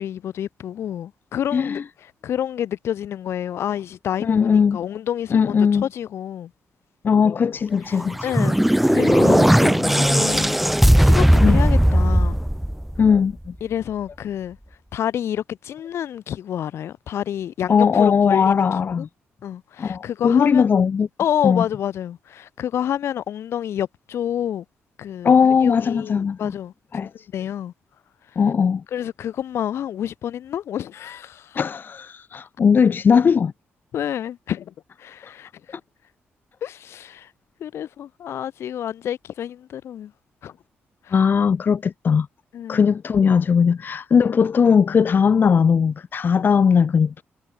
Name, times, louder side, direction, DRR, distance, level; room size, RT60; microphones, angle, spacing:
voice 1, 0.0-1.8 2.2-6.5 8.2-8.6 8.9-10.6 11.0-12.4 13.6-14.6 14.9-18.5 19.0-19.1 19.4-20.6 21.2-24.6 25.0-25.3 25.6-26.7 27.0-27.7 28.9-31.6 33.9-34.7 35.0-35.5 36.6-37.3 37.6-40.1 40.4-40.5 41.1-41.2 42.5-42.9, left 10 dB, 75° left, 4.3 m, -28 dB
voice 2, 1.5-1.8 4.2-4.8 5.3-5.8 7.0-8.2 11.4-11.6 13.0-13.5 17.7-19.1 19.8-21.1 21.4-21.6 25.2-26.5 26.9-27.1 28.4-28.8 31.5-33.5 41.1-42.3 42.7-47.2, left 6 dB, 50° left, 2.3 m, -18 dB
sound 1, 8.0-13.3, equal, 5° right, 0.9 m, -17 dB
cardioid pair, 95°, 4 cm